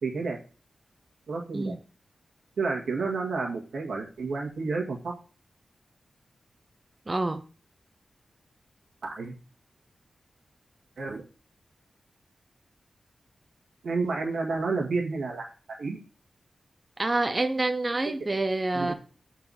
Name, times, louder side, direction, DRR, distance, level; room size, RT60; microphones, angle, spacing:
voice 1, 0.0-0.4 1.3-1.7 2.6-5.1 9.0-9.4 11.0-11.2 13.8-15.5 15.8-16.0 18.7-18.9, right 4 dB, 85° right, 1.8 m, -30 dB
voice 2, 7.1-7.4 17.0-18.9, right 2 dB, 30° right, 0.6 m, -27 dB
5.9 x 4.6 x 5.7 m
cardioid pair, 60°, 0 cm